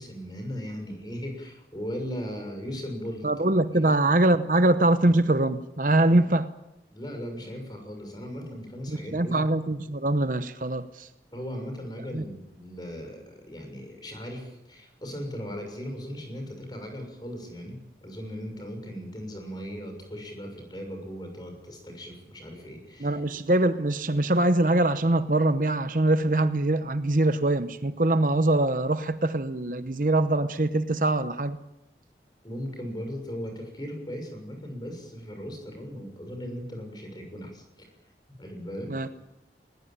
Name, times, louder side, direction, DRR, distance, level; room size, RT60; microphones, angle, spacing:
voice 1, 0.0-3.2 3.7-3.9 6.0-6.2 6.9-9.4 11.3-23.2 32.4-37.9 38.4-38.9, equal, 25° left, 6.5 m, -38 dB
voice 2, 3.2-6.5 8.9-11.1 12.1-12.2 23.0-31.6 38.9-39.1, right 2 dB, 50° right, 0.9 m, -23 dB
20.5 x 20.0 x 9.1 m
head